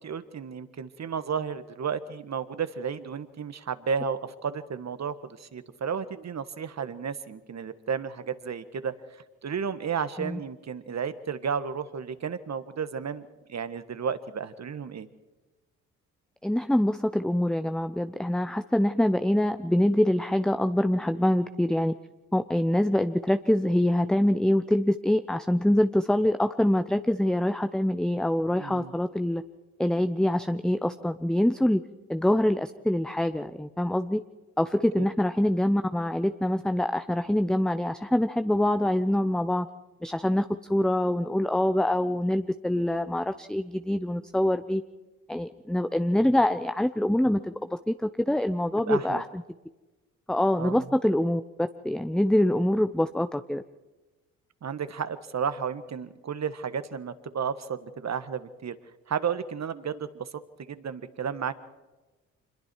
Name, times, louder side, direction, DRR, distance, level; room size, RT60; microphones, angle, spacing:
voice 1, 0.0-8.9 9.4-15.1 28.6-28.9 35.0-35.1 48.9-49.2 50.6-50.9 54.6-58.8 59.1-61.5, right 6 dB, 45° right, 12 dB, 1.6 m, -33 dB
voice 2, 16.4-21.9 22.3-29.4 29.8-31.8 32.1-34.2 34.6-39.7 40.0-44.8 45.3-49.2 50.3-53.6, left 1 dB, ahead, 9 dB, 0.8 m, -25 dB
26.5 x 21.5 x 4.7 m, 1.1 s
hypercardioid pair, 45°, 38 cm